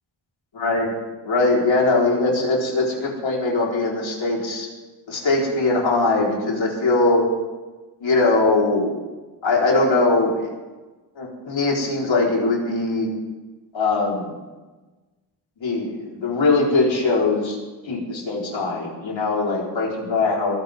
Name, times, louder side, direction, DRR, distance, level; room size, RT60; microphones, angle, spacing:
voice 1, 0.5-0.9 1.2-4.7 5.1-7.3 8.0-9.0 9.4-10.3 11.2-13.1 13.7-14.3 15.6-17.6 17.8-20.5, left 3 dB, 85° left, -3 dB, 4.5 m, -21 dB
22.5 x 16.0 x 3.7 m, 1.2 s
cardioid pair, 70°, 44 cm